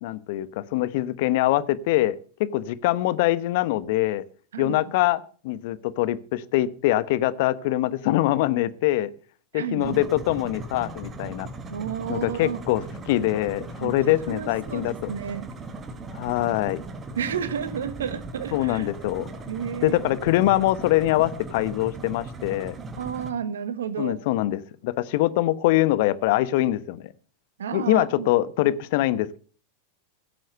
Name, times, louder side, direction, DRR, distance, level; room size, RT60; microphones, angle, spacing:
voice 1, 0.0-4.2 4.6-9.1 9.5-11.5 12.1-15.1 16.1-16.8 18.5-19.3 19.8-22.7 24.0-27.1 27.7-29.4, left 15 dB, 60° left, 16 dB, 0.9 m, -24 dB
voice 2, 9.5-10.0 11.7-12.6 13.8-15.5 17.1-18.9 19.5-20.0 22.9-24.2 27.6-28.3, right 8 dB, 75° right, 14 dB, 1.4 m, -31 dB
sound 1, 9.8-23.3, right 2 dB, 25° right, 1.8 m, -38 dB
15.5 x 7.6 x 6.6 m, 0.42 s
figure-of-eight pair, 90°, 0 cm